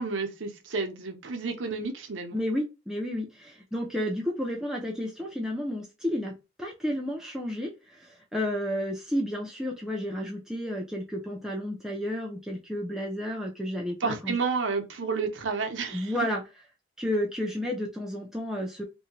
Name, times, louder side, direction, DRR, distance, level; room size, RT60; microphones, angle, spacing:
voice 1, 0.0-2.4 14.0-16.1, right 4 dB, 85° right, 0.7 m, -31 dB
voice 2, 2.3-14.4 15.9-16.4 17.0-18.8, equal, 5° right, 0.5 m, -31 dB
2.6 x 2.2 x 2.9 m
head